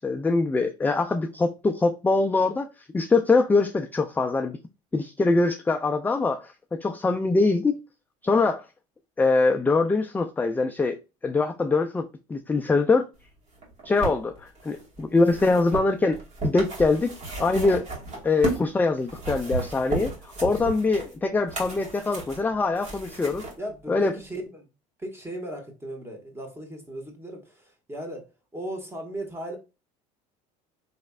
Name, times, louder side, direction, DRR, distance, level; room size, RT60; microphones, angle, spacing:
voice 1, 0.0-2.7 2.9-4.6 4.9-7.8 8.2-8.7 9.2-11.0 11.2-13.1 13.8-17.8 18.2-23.4 23.9-24.1, left 3 dB, 10° left, 0.4 m, -23 dB
sound 1, 13.5-18.7 19.0-23.5 24.3-24.4, right 3 dB, 45° right, 2.2 m, -34 dB
voice 2, 23.1-24.7 25.0-29.6, right 1 dB, 15° right, 1.5 m, -37 dB
4.2 x 3.2 x 2.3 m
supercardioid pair, 95°, 16 cm